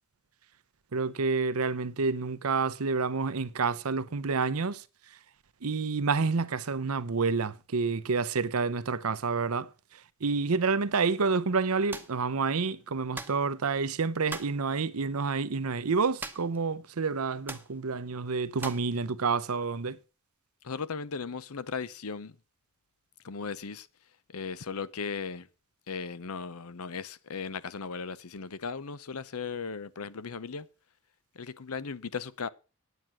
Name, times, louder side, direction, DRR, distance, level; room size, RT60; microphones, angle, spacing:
voice 1, 0.9-4.8 5.6-9.7 10.2-20.0, right 4 dB, 80° right, 0.7 m, -29 dB
sound 1, 11.9-12.2 13.1-13.4 14.3-14.6 16.2-16.6 16.9-17.0 17.5-17.7 18.6-18.9, right 3 dB, 10° right, 0.9 m, -39 dB
voice 2, 20.6-22.4 23.2-23.9 24.3-25.5 25.9-30.7 31.3-32.5, left 5 dB, 80° left, 0.8 m, -37 dB
9.3 x 9.2 x 6.0 m
head